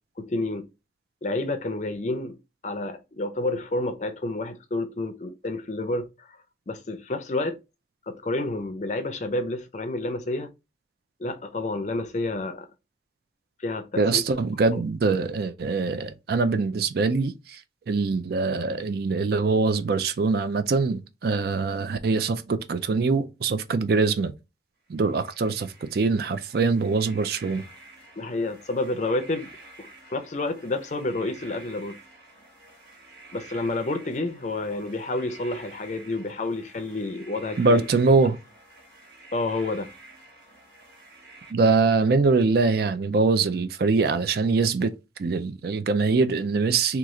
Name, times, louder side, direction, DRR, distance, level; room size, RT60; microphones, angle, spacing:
voice 1, 0.2-0.7 1.2-2.4 2.6-6.4 6.7-7.6 8.1-10.5 11.2-12.7 13.6-14.2 14.7-14.8 28.2-29.5 29.8-32.0 33.3-37.9 39.3-39.9, left 2 dB, 40° left, 0.5 m, -29 dB
voice 2, 14.0-17.6 17.9-24.3 24.9-27.6 37.6-38.4 41.5-44.9 45.2-47.0, right 4 dB, 55° right, 0.4 m, -23 dB
sound 1, 24.9-41.5, right 2 dB, 85° right, 1.6 m, -49 dB
3.0 x 2.4 x 3.6 m
head